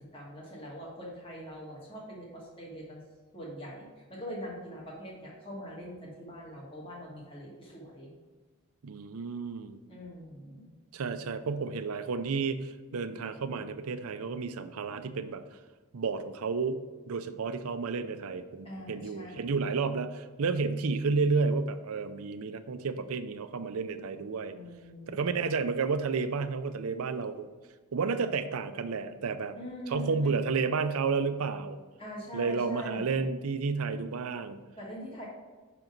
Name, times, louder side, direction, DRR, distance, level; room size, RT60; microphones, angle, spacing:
voice 1, 0.1-3.0 3.3-8.1 9.9-10.7 18.6-19.6 24.5-25.4 29.6-30.5 32.0-33.2 34.8-35.2, equal, 25° left, -4 dB, 1.5 m, -43 dB
voice 2, 8.8-9.8 10.9-15.4 15.9-16.8 17.1-24.5 25.1-27.5 27.9-29.6 29.9-31.8 32.3-34.6, right 4 dB, 80° right, 10 dB, 0.5 m, -31 dB
6.0 x 3.9 x 5.9 m, 1.3 s
head